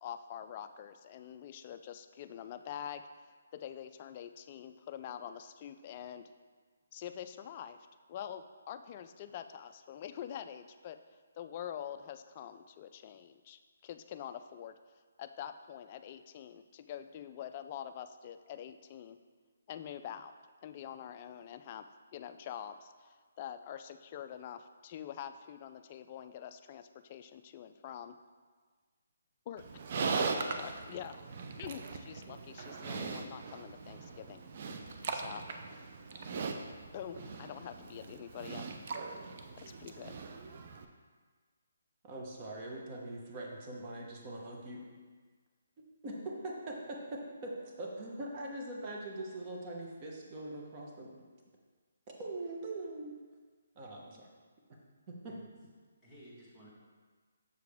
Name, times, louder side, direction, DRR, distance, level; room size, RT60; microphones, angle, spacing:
voice 1, 0.0-3.1 3.5-6.3 6.9-7.8 8.1-11.0 11.4-14.8 15.2-19.2 19.7-20.3 20.6-21.9 22.1-28.2 29.5-29.6 30.5-31.2 31.6-34.4 35.1-35.5 36.9-38.7 39.6-40.2, left 9 dB, 35° left, 9 dB, 0.3 m, -45 dB
Livestock farm animals working animals, 29.6-40.8, right 4 dB, 45° right, 0.5 m, -40 dB
voice 2, 42.0-44.8 46.0-51.1 52.2-53.2 53.8-54.3 55.1-55.3, right 2 dB, 30° right, -2 dB, 1.0 m, -42 dB
voice 3, 56.0-56.7, equal, 10° right, -8 dB, 1.5 m, -56 dB
6.6 x 4.7 x 3.5 m, 1.5 s
hypercardioid pair, 155°, 0 cm